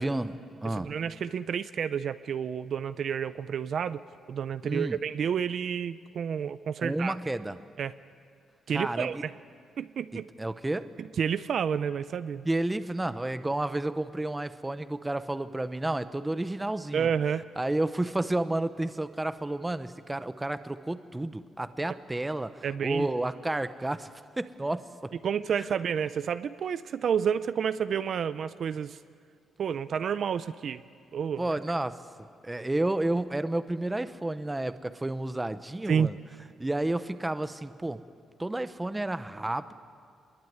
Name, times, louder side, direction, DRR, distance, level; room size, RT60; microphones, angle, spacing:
voice 1, 0.0-0.9 4.6-5.0 6.8-7.6 8.7-9.2 10.4-10.9 12.5-17.1 17.6-24.1 24.4-25.1 31.4-32.0 32.4-36.2 36.6-38.0 38.4-39.7, right 1 dB, 10° right, 12 dB, 0.7 m, -31 dB
voice 2, 0.7-4.0 4.3-7.1 7.8-7.9 8.7-9.3 9.8-10.3 11.0-12.4 16.9-17.4 22.6-23.1 25.2-29.0 29.6-30.8 31.1-31.5 35.9-36.1, right 7 dB, 50° right, 13 dB, 0.6 m, -30 dB
25.5 x 21.5 x 9.4 m, 2.2 s
cardioid pair, 165°, 0 cm